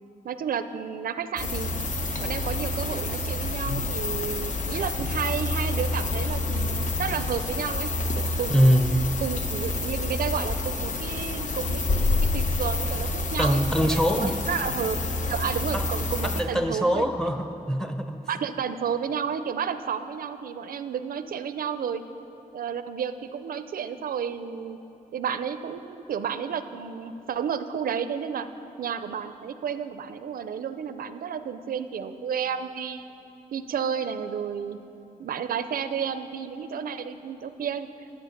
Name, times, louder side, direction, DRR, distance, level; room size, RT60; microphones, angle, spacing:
voice 1, 0.2-1.7 2.2-8.7 9.2-15.0 15.3-17.1 18.3-22.0 22.5-24.8 25.1-28.5 28.8-33.1 33.5-34.8 35.2-37.9, right 7 dB, 80° right, 11 dB, 0.5 m, -31 dB
sound 1, 1.4-16.4, left 2 dB, 60° left, 0.9 m, -28 dB
voice 2, 8.5-9.0 13.4-14.4 15.7-15.8 16.2-18.2, equal, 5° left, 6 dB, 0.7 m, -23 dB
12.0 x 8.1 x 6.5 m, 3.0 s
wide cardioid pair, 105°, 15 cm